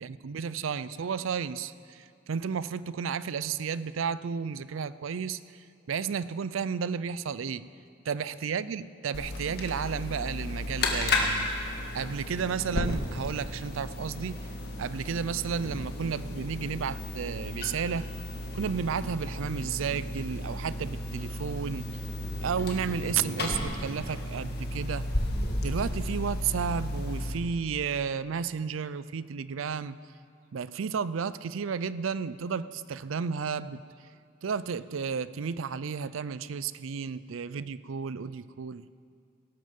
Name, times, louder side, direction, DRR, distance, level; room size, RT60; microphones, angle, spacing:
voice 1, 0.0-5.6 5.9-7.7 8.1-11.7 11.9-14.5 14.8-18.1 18.5-21.9 22.4-25.1 25.6-30.0 30.5-33.8 34.4-38.9, right 6 dB, 80° right, 16 dB, 0.4 m, -32 dB
sound 1, 9.1-27.3, left 1 dB, 50° left, 1.8 m, -33 dB
17.5 x 13.0 x 5.3 m, 2.4 s
head